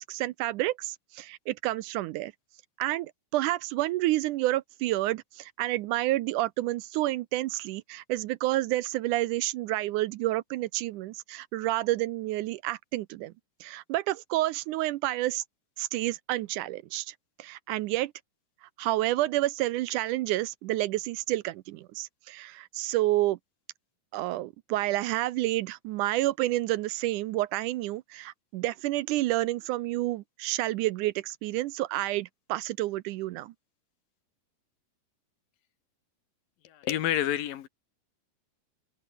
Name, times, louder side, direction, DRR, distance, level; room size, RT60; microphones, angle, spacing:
voice 1, 0.0-2.3 2.8-13.3 13.6-15.4 15.8-18.1 18.8-23.4 24.1-33.5, right 16 dB, 75° right, 2.0 m, -29 dB
voice 2, 36.6-37.7, left 12 dB, 90° left, 3.3 m, -29 dB
omnidirectional pair, 3.9 m